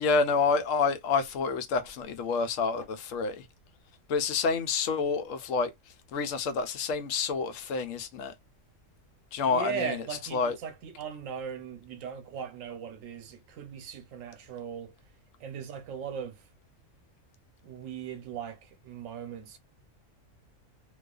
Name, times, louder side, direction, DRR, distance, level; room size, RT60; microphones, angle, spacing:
voice 1, 0.0-3.4 4.1-5.7 6.1-8.3 9.3-10.0 10.3-10.6, left 5 dB, 80° left, 1.0 m, -28 dB
voice 2, 9.4-14.9 15.4-16.4 17.6-19.6, right 7 dB, 85° right, 1.0 m, -38 dB
2.3 x 2.3 x 2.3 m
omnidirectional pair, 1.3 m